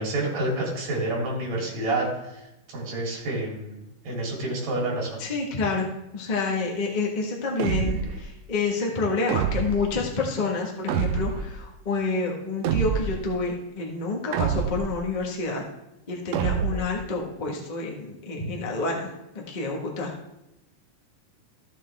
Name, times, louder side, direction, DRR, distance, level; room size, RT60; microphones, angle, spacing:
voice 1, 0.0-2.4 2.7-5.2, right 2 dB, 60° right, -3 dB, 4.4 m, -29 dB
voice 2, 5.2-15.6 16.1-19.1 19.5-20.1, left 3 dB, 70° left, -1 dB, 0.4 m, -28 dB
sound 1, 7.6-8.3 9.3-9.9 10.9-11.6 12.6-13.3 14.3-15.0 16.3-17.0, right 8 dB, 80° right, 1.5 m, -26 dB
14.0 x 7.4 x 3.5 m, 0.90 s
omnidirectional pair, 3.7 m